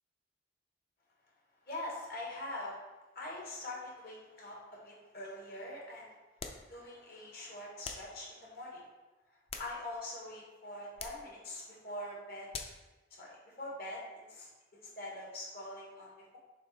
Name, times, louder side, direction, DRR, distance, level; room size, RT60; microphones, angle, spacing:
voice 1, 1.6-2.8 3.1-6.1 6.7-8.8 9.6-12.5 13.2-16.4, left 1 dB, 60° left, -4 dB, 1.9 m, -44 dB
sound 1, 6.4-6.7 7.8-8.1 9.2-10.1 10.9-11.3 12.5-12.9, left 4 dB, 35° left, 0.6 m, -44 dB
7.2 x 3.0 x 4.8 m, 1.1 s
head